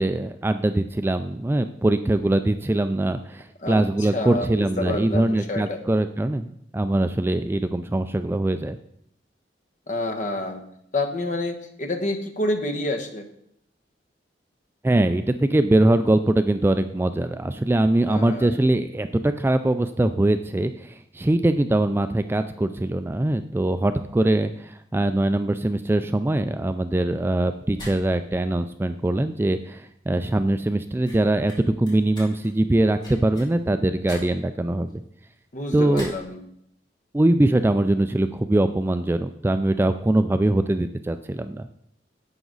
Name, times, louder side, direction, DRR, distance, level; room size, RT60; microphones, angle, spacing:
voice 1, 0.0-8.8 14.8-35.0 35.7-36.1 37.1-41.7, right 1 dB, 10° right, 10 dB, 0.3 m, -22 dB
voice 2, 3.6-5.8 9.9-10.6 10.9-13.2 18.1-18.5 35.5-36.4, left 2 dB, 45° left, 6 dB, 1.2 m, -28 dB
sound 1, 27.6-36.3, left 1 dB, 25° left, 2.9 m, -45 dB
11.0 x 8.1 x 4.0 m, 0.73 s
head